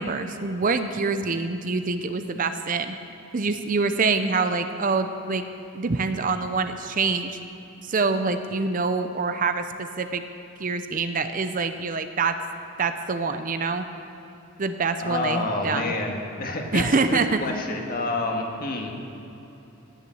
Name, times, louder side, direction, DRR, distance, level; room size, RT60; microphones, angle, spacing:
voice 1, 0.0-3.0 3.3-5.4 5.7-7.4 7.8-10.2 10.6-12.3 12.8-13.8 14.6-15.9 16.7-17.4, right 4 dB, 40° right, 9 dB, 0.6 m, -25 dB
voice 2, 15.0-18.9, left 2 dB, 45° left, 1 dB, 1.6 m, -28 dB
18.0 x 7.0 x 7.8 m, 3.0 s
head